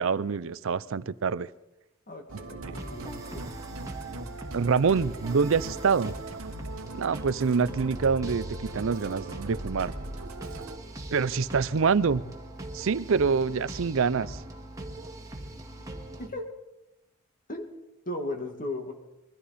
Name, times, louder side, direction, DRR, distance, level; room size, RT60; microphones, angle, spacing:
voice 1, 0.0-1.5 2.7-2.8 4.5-6.1 6.9-9.9 11.1-12.2 12.7-14.4, right 5 dB, 65° right, 17 dB, 0.5 m, -26 dB
voice 2, 2.1-3.5 16.2-16.5 17.5-17.7 18.1-18.9, left 1 dB, 40° left, 4 dB, 2.1 m, -36 dB
Musical instrument, 2.3-10.8, right 2 dB, 80° right, 1.3 m, -40 dB
sound 1, 2.7-16.3, right 1 dB, 15° right, 1.8 m, -41 dB
23.0 x 14.0 x 4.2 m, 0.94 s
head